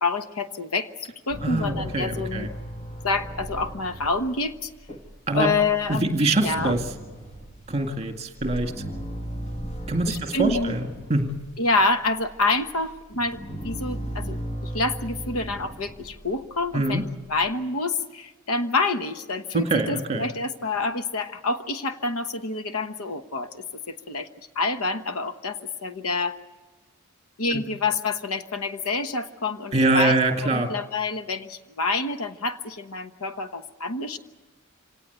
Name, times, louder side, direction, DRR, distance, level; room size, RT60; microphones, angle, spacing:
voice 1, 0.0-2.5 3.0-4.7 5.3-6.7 10.1-10.8 11.6-14.4 14.6-26.4 27.4-34.2, left 3 dB, 85° left, 9 dB, 1.2 m, -27 dB
sound 1, 1.3-11.5 11.9-17.5, equal, 30° left, 1.7 m, -37 dB
voice 2, 1.4-2.5 5.3-5.5 5.9-6.8 7.7-8.7 9.9-11.3 16.7-17.0 19.5-20.3 27.5-27.6 29.7-30.7, right 2 dB, 30° right, 5 dB, 2.0 m, -24 dB
26.0 x 18.0 x 8.2 m, 1.3 s
head